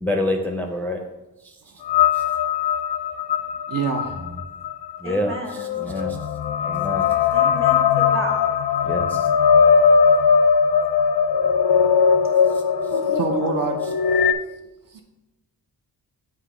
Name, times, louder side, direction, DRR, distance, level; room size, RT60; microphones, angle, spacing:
voice 1, 0.0-1.0 1.4-1.5 2.1-2.2 5.0-6.2 6.6-7.1 8.8-9.3, left 1 dB, 5° left, 2 dB, 0.4 m, -27 dB
sound 1, 1.9-14.3, left 6 dB, 80° left, 0.5 m, -19 dB
voice 2, 3.7-4.2 13.2-13.9 14.9-15.0, right 5 dB, 55° right, 2 dB, 0.7 m, -25 dB
voice 3, 5.0-5.9 7.3-8.5 12.9-13.6, right 2 dB, 35° right, 1 dB, 1.2 m, -33 dB
7.9 x 2.9 x 4.9 m, 1.0 s
wide cardioid pair, 130°, 38 cm